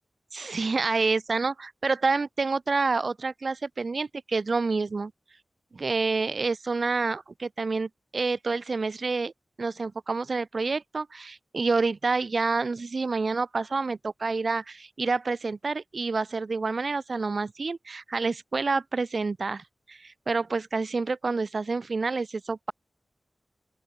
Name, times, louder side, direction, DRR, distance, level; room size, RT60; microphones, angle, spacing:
voice 1, 0.3-5.1 5.7-9.3 9.6-22.7, right 4 dB, 65° right, 0.6 m, -28 dB
open air
cardioid pair, 55°, 0 cm